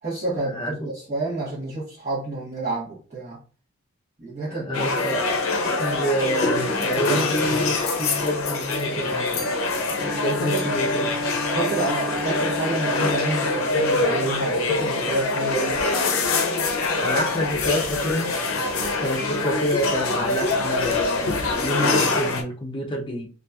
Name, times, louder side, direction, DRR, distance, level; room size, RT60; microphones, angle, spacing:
voice 1, 0.0-3.4 4.2-5.2 10.4-10.7 11.5-15.8, right 2 dB, 35° right, 1.0 m, -29 dB
voice 2, 0.5-0.9 4.6-5.2 5.8-9.5 9.9-11.4 17.0-18.3 19.0-23.3, equal, 25° left, 0.6 m, -28 dB
sound 1, 4.7-22.4, left 3 dB, 70° left, 0.6 m, -24 dB
sound 2, 9.8-13.9, left 2 dB, 5° right, 1.4 m, -32 dB
2.8 x 2.4 x 2.3 m
head